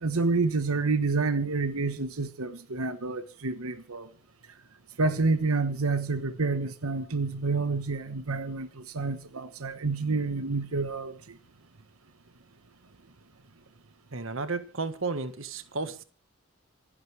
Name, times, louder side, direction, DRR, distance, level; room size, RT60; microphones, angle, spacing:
voice 1, 0.0-4.1 5.0-11.2, right 3 dB, 85° right, 1.1 m, -28 dB
voice 2, 14.1-16.0, right 3 dB, 65° right, 1.5 m, -33 dB
27.5 x 10.5 x 3.3 m
head